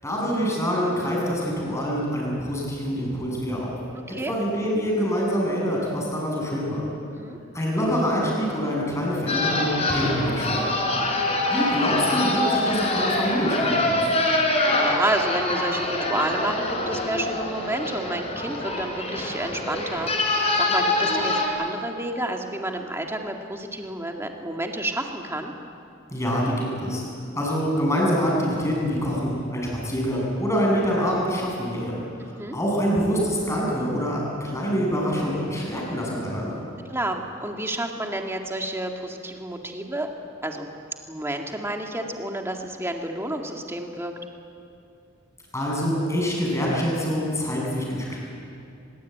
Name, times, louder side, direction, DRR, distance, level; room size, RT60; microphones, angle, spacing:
voice 1, 0.0-3.8 4.3-6.8 7.5-10.7 11.5-14.1 26.1-27.0 27.4-36.6 45.5-48.2, equal, 15° left, -3 dB, 7.4 m, -25 dB
sound 1, 9.3-21.5, left 2 dB, 30° left, 4.5 m, -25 dB
voice 2, 14.6-25.5 32.2-32.6 36.9-40.1 40.4-40.7 41.1-44.1, right 1 dB, 10° right, 2 dB, 2.1 m, -30 dB
24.0 x 22.0 x 9.3 m, 2.6 s
head